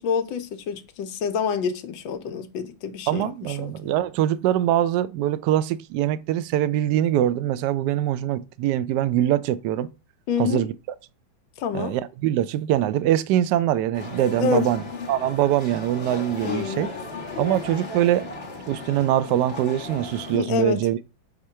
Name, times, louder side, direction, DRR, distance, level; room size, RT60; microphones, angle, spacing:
voice 1, 0.0-3.9 10.3-10.7 11.6-12.0 14.4-14.7 16.4-16.8 20.3-20.8, left 6 dB, 75° left, 1.4 m, -27 dB
voice 2, 3.1-9.9 10.4-10.7 11.7-16.9 17.4-18.3 18.7-21.0, right 12 dB, 75° right, 1.0 m, -23 dB
sound 1, 13.9-20.4, left 3 dB, 30° left, 1.9 m, -35 dB
6.5 x 3.7 x 4.4 m
omnidirectional pair, 2.2 m